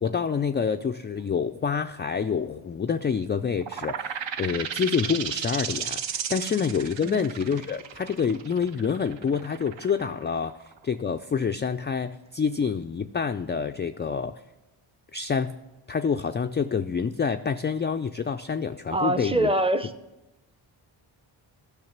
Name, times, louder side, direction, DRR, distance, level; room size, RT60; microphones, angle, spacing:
voice 1, 0.0-10.5 10.8-14.4 15.1-15.6 15.9-19.5, left 6 dB, 25° left, 7 dB, 0.3 m, -27 dB
sound 1, 3.6-11.0, right 8 dB, 65° right, 0.8 m, -34 dB
voice 2, 18.9-19.9, right 1 dB, 10° right, 11 dB, 0.6 m, -24 dB
12.0 x 6.1 x 5.9 m, 0.98 s
cardioid pair, 65°, 49 cm